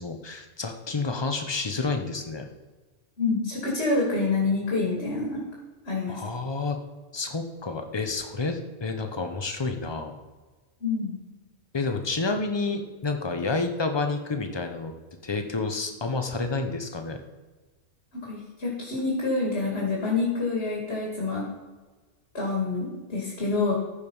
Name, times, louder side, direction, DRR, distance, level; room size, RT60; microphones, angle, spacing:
voice 1, 0.0-2.4 6.1-6.8 7.1-10.1 11.7-14.9 15.2-17.2, left 3 dB, 25° left, 6 dB, 0.9 m, -29 dB
voice 2, 3.2-5.4 5.9-6.2 10.8-11.2 18.2-21.5 22.3-23.7, left 3 dB, 60° left, -3 dB, 2.6 m, -27 dB
14.5 x 5.2 x 5.5 m, 1.3 s
omnidirectional pair, 1.2 m